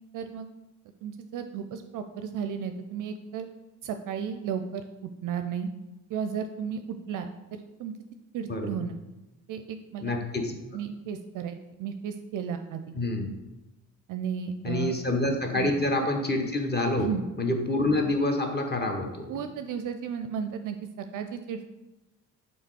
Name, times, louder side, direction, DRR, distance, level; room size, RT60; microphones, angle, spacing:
voice 1, 0.1-0.5 1.0-3.5 3.8-4.9 5.2-5.7 6.1-7.9 8.3-8.9 9.5-10.2 10.7-12.8 14.1-14.9 15.5-15.7 17.0-17.2 19.3-21.6, right 7 dB, 45° right, 7 dB, 0.5 m, -34 dB
voice 2, 8.5-8.8 10.0-10.5 12.9-13.3 14.6-17.1 17.4-19.3, left 2 dB, 20° left, 4 dB, 1.0 m, -27 dB
5.6 x 4.1 x 4.8 m, 1.0 s
figure-of-eight pair, 45°, 45 cm